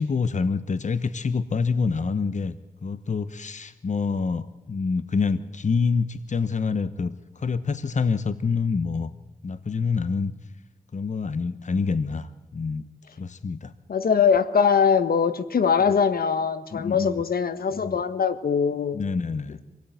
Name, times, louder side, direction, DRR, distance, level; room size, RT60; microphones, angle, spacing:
voice 1, 0.0-2.6 2.8-9.1 9.4-10.3 10.9-12.9 13.2-13.7 15.8-16.0 16.7-17.2 17.7-18.0 18.9-19.6, left 5 dB, 50° left, 1.1 m, -26 dB
voice 2, 13.9-19.0, left 6 dB, 75° left, 1.5 m, -22 dB
26.0 x 17.5 x 9.2 m
cardioid pair, 55°, 15 cm